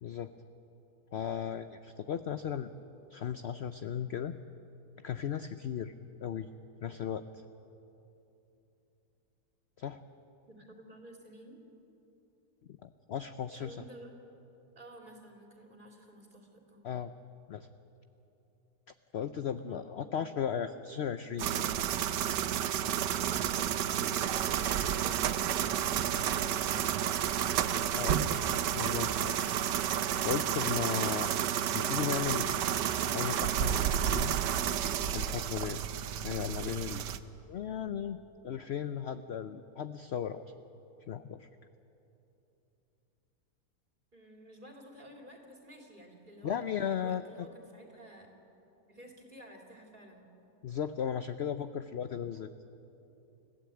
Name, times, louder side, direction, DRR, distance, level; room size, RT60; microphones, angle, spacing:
voice 1, 0.0-0.3 1.1-2.7 3.1-4.4 5.0-5.9 6.2-6.5 6.8-7.2 9.8-10.0 12.8-13.8 16.8-17.1 17.5-17.7 19.1-21.7 27.9-28.1 28.7-29.4 30.2-31.3 31.7-32.5 33.1-34.3 35.1-37.0 37.5-38.2 38.4-40.4 41.1-41.5 46.4-47.5 50.6-52.5, left 8 dB, 65° left, 10 dB, 0.6 m, -36 dB
voice 2, 10.5-11.6 13.5-14.1 14.7-16.8 19.6-20.3 44.1-48.3 48.9-50.3, right 1 dB, 30° right, 1 dB, 3.2 m, -53 dB
sound 1, 21.4-37.2, right 9 dB, 90° right, 1.4 m, -31 dB
29.5 x 15.0 x 8.7 m, 3.0 s
omnidirectional pair, 1.8 m